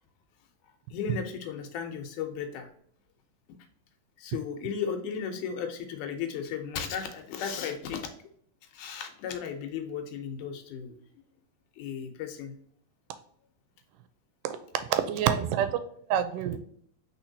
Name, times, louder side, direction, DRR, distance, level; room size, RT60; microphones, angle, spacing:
voice 1, 0.9-2.7 3.5-3.6 4.2-8.1 8.7-11.0 11.8-12.6, left 7 dB, 75° left, 5 dB, 2.1 m, -35 dB
voice 2, 14.4-15.8 16.1-16.6, right 9 dB, 80° right, 10 dB, 2.0 m, -27 dB
4.4 x 4.3 x 2.7 m, 0.63 s
omnidirectional pair, 3.9 m